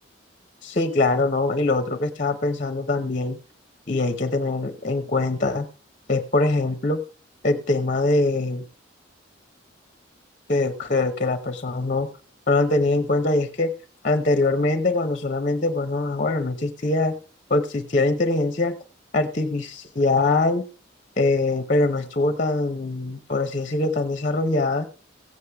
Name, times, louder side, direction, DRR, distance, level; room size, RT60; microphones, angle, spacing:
voice 1, 0.6-3.4 3.9-5.7 6.1-7.0 7.4-8.6 10.5-12.1 12.5-13.7 14.0-17.1 17.5-18.7 19.1-20.6 21.2-24.9, left 2 dB, 40° left, 8 dB, 0.8 m, -23 dB
16.0 x 8.4 x 3.5 m, 0.37 s
head